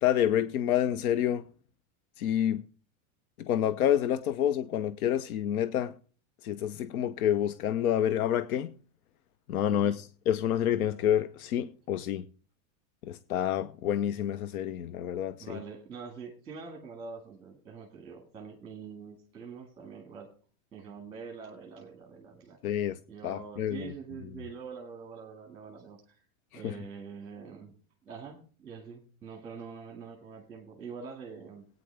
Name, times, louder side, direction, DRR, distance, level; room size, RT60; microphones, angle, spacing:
voice 1, 0.0-1.5 2.2-2.6 3.4-5.9 6.4-8.7 9.5-12.2 13.1-15.6 22.6-23.0 23.2-23.9 26.6-26.7, left 10 dB, 90° left, 0.9 m, -28 dB
voice 2, 9.7-10.0 15.4-20.3 20.7-22.6 23.1-26.2 26.5-27.7 28.0-31.7, right 5 dB, 15° right, 1.8 m, -45 dB
18.0 x 9.3 x 3.4 m
supercardioid pair, 175°, 42 cm